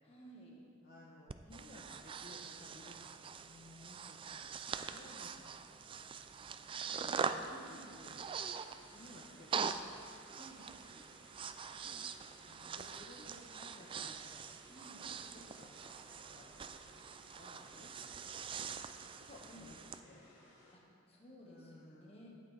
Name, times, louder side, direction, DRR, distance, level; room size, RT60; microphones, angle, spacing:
voice 1, 0.0-0.6 7.5-8.1 10.4-10.7 14.7-15.1 19.5-19.7 20.7-22.3, right 1 dB, 30° left, -2 dB, 1.6 m, -56 dB
voice 2, 0.8-3.1 3.4-8.2 8.9-10.1 12.4-14.4 14.9-16.5 17.4-18.7 19.3-19.8 20.0-20.3 21.4-22.3, left 1 dB, 45° left, -4 dB, 0.9 m, -59 dB
Breathing, 1.3-20.0, right 6 dB, 25° right, 0.3 m, -44 dB
sound 1, 6.9-20.7, left 1 dB, 85° left, 2.6 m, -63 dB
12.5 x 8.7 x 3.4 m, 2.3 s
head